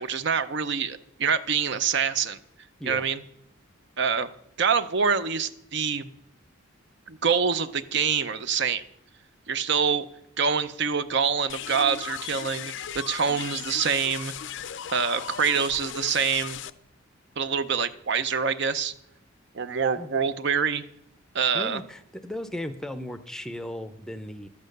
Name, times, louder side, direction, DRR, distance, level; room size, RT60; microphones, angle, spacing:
voice 1, 0.0-2.4 2.8-3.2 4.0-4.3 4.6-6.1 7.1-8.8 9.5-10.1 10.4-14.3 14.9-16.6 17.4-18.9 19.5-20.8 21.3-21.8, right 6 dB, 55° right, 12 dB, 0.6 m, -25 dB
sound 1, 11.5-16.7, left 9 dB, 60° left, 0.5 m, -37 dB
voice 2, 21.5-24.5, left 1 dB, 5° left, 10 dB, 0.5 m, -36 dB
12.0 x 8.7 x 6.5 m, 0.76 s
head